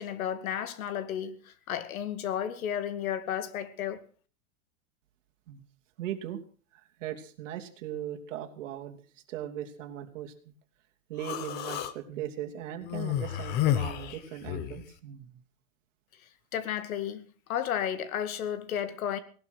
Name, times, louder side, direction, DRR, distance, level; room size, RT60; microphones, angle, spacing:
voice 1, 0.0-4.0 16.2-19.2, left 9 dB, 80° left, 2.3 m, -33 dB
voice 2, 6.0-6.4 6.7-9.0 9.3-10.5 11.1-15.4, right 11 dB, 60° right, 3.0 m, -39 dB
Human voice, 11.2-11.9 12.9-14.8, left 11 dB, 25° left, 0.9 m, -30 dB
18.5 x 12.0 x 6.2 m
supercardioid pair, 170°, 41 cm